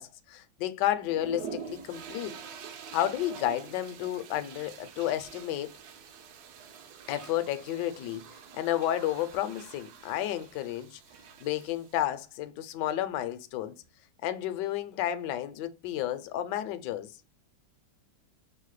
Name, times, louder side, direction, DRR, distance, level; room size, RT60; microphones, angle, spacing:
voice 1, 0.0-2.3 2.9-5.7 7.1-8.2 8.5-11.0 11.4-13.8 14.2-17.1, left 12 dB, 75° left, 1.1 m, -31 dB
sound 1, 1.0-12.0, right 7 dB, 70° right, 1.0 m, -46 dB
5.5 x 2.1 x 3.1 m
omnidirectional pair, 2.1 m